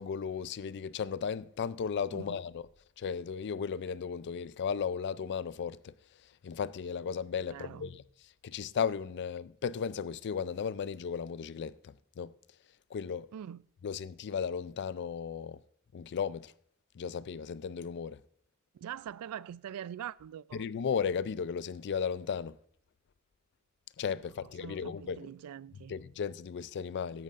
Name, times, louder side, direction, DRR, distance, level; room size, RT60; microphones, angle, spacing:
voice 1, 0.0-2.6 3.0-5.9 6.4-8.0 8.4-12.3 12.9-13.3 13.8-15.6 15.9-16.5 17.0-18.2 20.5-22.6 24.0-25.3 25.9-27.2, left 6 dB, 50° left, 0.4 m, -35 dB
voice 2, 7.5-7.8 13.3-13.6 18.7-20.7 24.6-25.9, right 9 dB, 90° right, 0.3 m, -43 dB
14.0 x 11.0 x 2.5 m
head